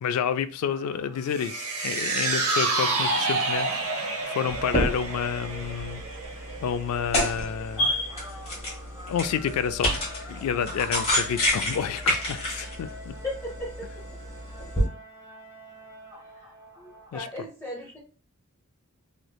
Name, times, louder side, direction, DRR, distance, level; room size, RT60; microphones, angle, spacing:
voice 1, 0.0-3.7 3.9-6.0 6.6-7.9 9.1-10.0 10.3-13.1 17.1-17.3, left 7 dB, 80° left, 0.3 m, -29 dB
sound 1, 0.6-17.2, left 1 dB, 15° right, 1.2 m, -48 dB
sound 2, 1.3-7.7 8.1-8.2, right 3 dB, 75° right, 0.9 m, -29 dB
sound 3, 4.5-14.9, equal, 30° left, 1.2 m, -30 dB
voice 2, 13.4-14.0 16.4-18.0, equal, 10° left, 0.7 m, -39 dB
3.2 x 3.0 x 2.2 m
head